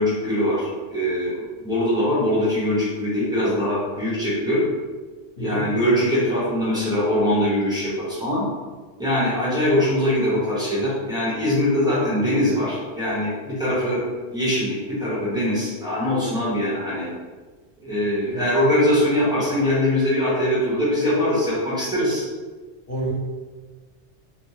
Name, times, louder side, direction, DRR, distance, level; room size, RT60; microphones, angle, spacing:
voice 1, 0.0-4.6 5.4-8.4 9.0-14.0 14.3-17.1 17.8-22.2, left 1 dB, 5° right, -9 dB, 0.8 m, -22 dB
voice 2, 5.4-5.7 18.3-18.5 22.9-23.1, right 1 dB, 60° left, -6 dB, 1.2 m, -29 dB
3.4 x 2.1 x 2.8 m, 1.4 s
omnidirectional pair, 1.3 m